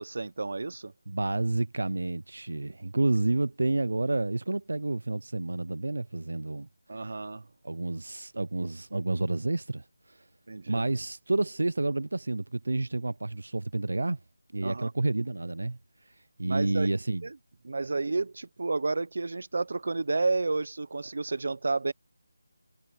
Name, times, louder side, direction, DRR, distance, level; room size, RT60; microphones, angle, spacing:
voice 1, 0.0-0.9 6.9-7.5 10.5-10.8 14.6-14.9 16.5-16.9 17.2-17.4 17.6-21.9, right 3 dB, 55° right, 1.1 m, -31 dB
voice 2, 1.1-6.7 7.0-7.2 7.6-10.2 10.7-14.2 14.5-15.8 16.1-17.2, right 2 dB, 80° right, 0.5 m, -30 dB
figure-of-eight pair, 175°, 0 cm